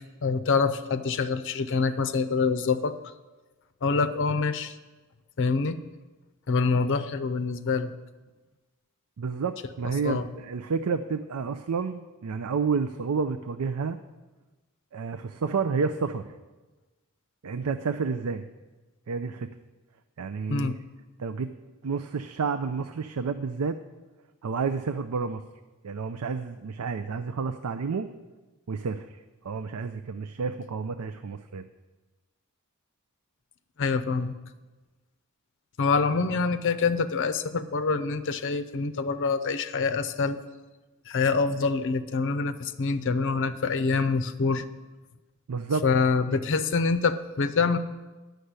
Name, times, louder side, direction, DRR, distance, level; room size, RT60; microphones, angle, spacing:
voice 1, 0.2-3.0 3.8-4.8 5.4-5.8 6.5-7.9 10.0-10.3 20.5-20.7 33.8-34.4 35.8-40.4 41.1-44.6 45.8-47.8, left 4 dB, 60° left, 11 dB, 0.6 m, -25 dB
voice 2, 9.2-14.0 14.9-16.3 17.4-18.4 19.1-19.5 20.2-20.8 21.2-21.5 21.8-23.8 24.4-25.4 25.8-28.1 28.7-29.2 29.4-31.7 45.5-46.2, right 5 dB, 80° right, 9 dB, 0.5 m, -30 dB
10.0 x 6.5 x 8.0 m, 1.2 s
head